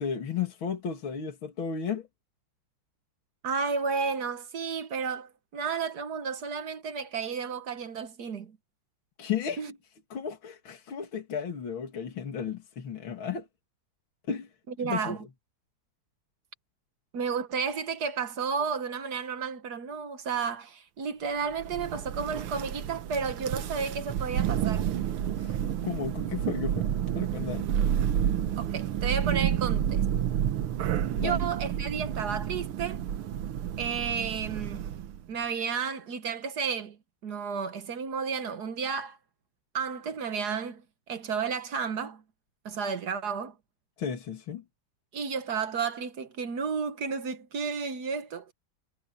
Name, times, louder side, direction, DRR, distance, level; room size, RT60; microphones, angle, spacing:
voice 1, 0.0-2.1 9.2-9.6 10.1-13.5 14.3-14.5 14.8-15.2 25.4-27.7 28.2-28.3 31.2-31.4 44.0-44.6, left 7 dB, 70° left, 3.2 m, -34 dB
voice 2, 3.4-8.6 9.6-9.7 14.7-15.2 17.1-24.9 28.6-30.0 31.1-33.0 33.8-34.8 35.3-37.0 37.2-39.2 39.7-40.8 41.1-42.2 42.6-43.5 45.1-48.5, right 6 dB, 55° right, 1.6 m, -32 dB
Thunder, 21.6-35.2, right 10 dB, 85° right, 1.9 m, -30 dB
omnidirectional pair, 2.3 m